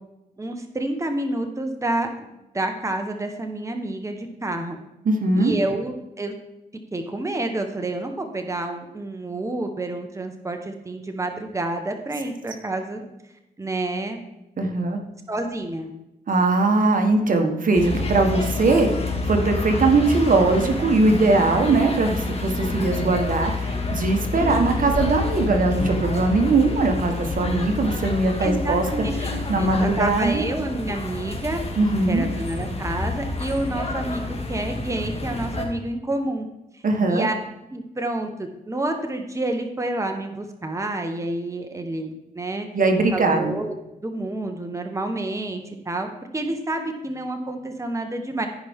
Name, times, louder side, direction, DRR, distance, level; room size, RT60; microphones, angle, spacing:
voice 1, 0.4-2.3 2.5-4.8 5.4-6.3 6.9-13.0 13.6-14.2 15.3-15.9 24.3-24.9 28.4-31.6 32.1-36.5 36.7-37.3 37.7-42.7 43.1-43.7 44.0-46.1 46.3-48.5, right 2 dB, 20° right, 5 dB, 1.2 m, -29 dB
voice 2, 5.0-5.5 14.6-15.0 16.3-18.9 19.3-28.8 29.5-30.4 31.8-32.3 36.8-37.3 42.7-43.5, right 3 dB, 55° right, 4 dB, 1.3 m, -20 dB
sound 1, 17.7-35.6, left 3 dB, 40° left, 2.1 m, -28 dB
15.0 x 5.3 x 3.6 m, 0.91 s
cardioid pair, 65°, 16 cm